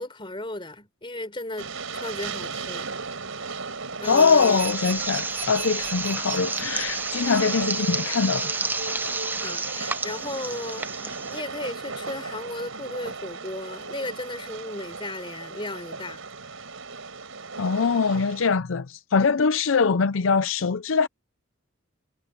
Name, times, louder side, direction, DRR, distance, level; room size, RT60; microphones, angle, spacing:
voice 1, 0.0-2.9 4.0-4.6 9.4-10.9 11.3-16.2, left 2 dB, 25° left, 4.2 m, -35 dB
Train, 1.6-18.5, right 4 dB, 85° right, 4.9 m, -37 dB
sound 1, 4.0-11.4, right 3 dB, 10° right, 0.7 m, -31 dB
voice 2, 4.1-8.5 17.6-21.1, left 5 dB, 75° left, 0.6 m, -22 dB
sound 2, 4.2-9.5, right 6 dB, 70° right, 5.6 m, -40 dB
head